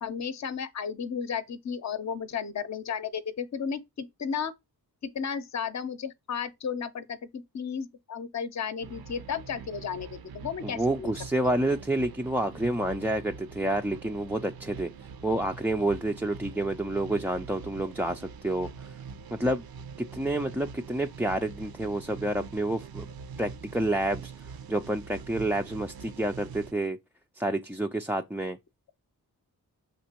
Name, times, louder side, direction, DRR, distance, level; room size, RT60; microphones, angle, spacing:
voice 1, 0.0-4.5 5.0-11.1 11.4-11.6, left 7 dB, 45° left, 0.7 m, -34 dB
sound 1, 8.8-26.7, right 5 dB, 65° right, 0.6 m, -44 dB
voice 2, 10.6-14.9 15.2-18.9 19.4-19.6 20.0-23.1 23.4-24.3 24.7-27.0 27.4-28.6, right 1 dB, 5° right, 0.4 m, -29 dB
6.1 x 3.0 x 2.9 m
cardioid pair, 40°, 40 cm